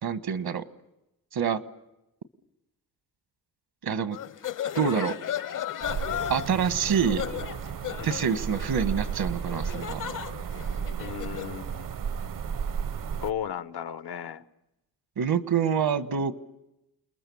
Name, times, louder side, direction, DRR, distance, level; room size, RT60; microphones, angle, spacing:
voice 1, 0.0-0.6 1.3-1.6 3.8-4.2 4.7-5.2 6.3-7.2 8.0-10.0 15.2-16.3, right 7 dB, 75° right, 1.4 m, -26 dB
sound 1, 4.1-11.6, left 10 dB, 55° left, 0.8 m, -35 dB
sound 2, 5.8-13.3, right 7 dB, 60° right, 0.8 m, -34 dB
voice 2, 11.0-11.9 13.2-14.4, left 9 dB, 85° left, 1.1 m, -35 dB
29.5 x 21.0 x 7.1 m
cardioid pair, 75°, 37 cm